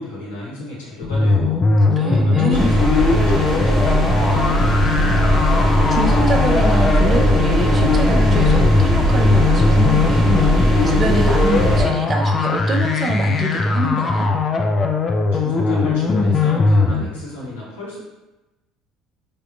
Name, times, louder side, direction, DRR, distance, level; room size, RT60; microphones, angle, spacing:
voice 1, 0.0-1.6 2.1-5.2 15.3-18.0, left 2 dB, 80° left, -7 dB, 0.9 m, -32 dB
sound 1, 1.0-17.0, left 3 dB, 35° left, 0.3 m, -19 dB
voice 2, 1.9-2.8 5.5-10.3 10.8-14.3, right 2 dB, 30° right, 2 dB, 0.5 m, -25 dB
sound 2, 2.5-11.8, equal, 10° left, 1.0 m, -19 dB
3.4 x 2.2 x 2.5 m, 1.0 s
figure-of-eight pair, 60°, 0 cm